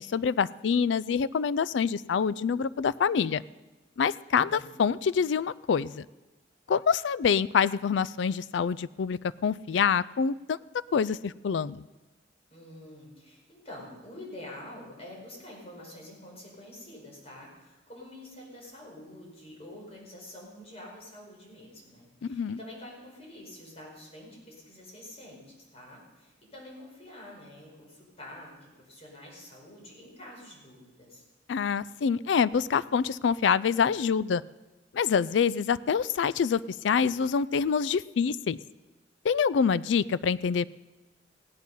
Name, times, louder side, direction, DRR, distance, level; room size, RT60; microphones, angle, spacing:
voice 1, 0.0-3.4 4.0-6.1 6.7-10.6 10.9-11.8 22.2-22.6 31.5-34.4 34.9-38.6 39.2-40.6, left 6 dB, 70° left, 19 dB, 0.4 m, -26 dB
voice 2, 4.3-4.8 12.5-31.2, left 1 dB, 35° left, -2 dB, 5.1 m, -47 dB
16.5 x 10.5 x 5.5 m, 1.1 s
head